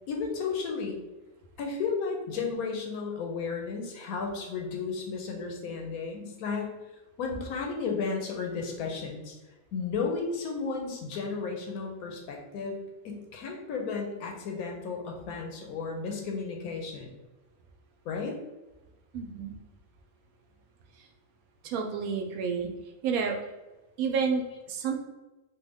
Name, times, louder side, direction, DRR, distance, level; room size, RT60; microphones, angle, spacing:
voice 1, 0.1-1.0 1.6-6.7 7.2-9.3 9.7-12.8 13.0-17.1 18.0-18.4, left 5 dB, 90° left, 1 dB, 1.1 m, -33 dB
voice 2, 19.1-19.5 21.0-21.1 21.6-22.7 23.0-23.4 24.0-25.0, right 5 dB, 80° right, 2 dB, 1.0 m, -30 dB
3.3 x 2.2 x 3.4 m, 1.1 s
omnidirectional pair, 1.5 m